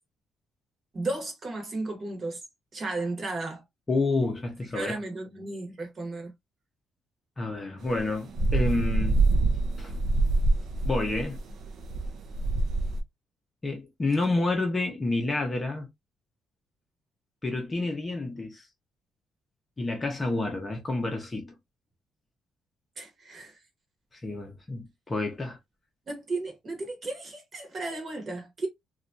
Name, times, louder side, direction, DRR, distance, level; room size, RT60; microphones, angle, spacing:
voice 1, 0.9-2.4 2.7-3.6 4.7-6.3 23.0-23.6 26.1-28.7, right 2 dB, 30° right, 1.0 m, -34 dB
voice 2, 3.9-4.9 7.4-9.2 9.8-9.9 10.8-11.4 13.6-15.9 17.4-18.6 19.8-21.5 24.2-25.6, left 2 dB, 20° left, 0.7 m, -29 dB
sound 1, 7.9-13.0, right 2 dB, 45° right, 0.5 m, -25 dB
3.1 x 2.3 x 2.5 m
cardioid pair, 160°, 0 cm